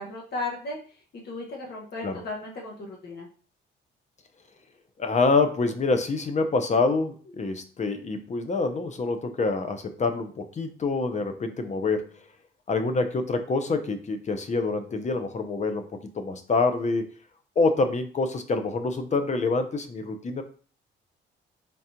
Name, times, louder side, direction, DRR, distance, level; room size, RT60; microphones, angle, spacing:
voice 1, 0.0-3.3, left 2 dB, 55° left, -2 dB, 1.5 m, -36 dB
voice 2, 5.0-12.1 12.7-15.8 16.1-17.1 17.6-20.4, left 3 dB, 35° left, 8 dB, 0.7 m, -26 dB
3.9 x 3.7 x 2.9 m, 0.42 s
cardioid pair, 90°, 20 cm